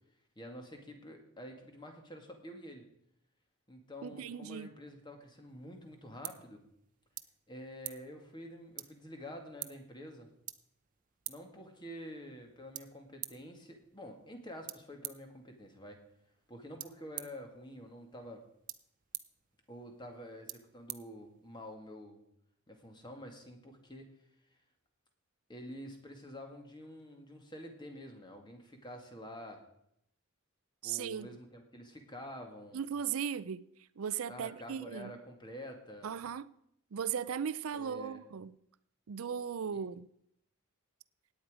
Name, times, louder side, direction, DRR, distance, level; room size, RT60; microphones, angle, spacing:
voice 1, 0.4-2.9 3.7-6.6 7.5-10.3 11.3-16.0 16.5-18.4 19.7-22.2 22.7-24.1 25.5-29.6 30.8-32.8 34.3-36.2 37.7-38.2 39.7-39.8, equal, 20° left, 2.0 m, -48 dB
voice 2, 4.0-4.7 30.8-31.3 32.7-33.6 34.0-35.1 36.0-36.5 36.9-38.5 39.1-40.1, right 7 dB, 85° right, 0.5 m, -37 dB
sound 1, 5.5-21.8, right 14 dB, 40° right, 0.7 m, -50 dB
17.0 x 9.4 x 5.0 m
head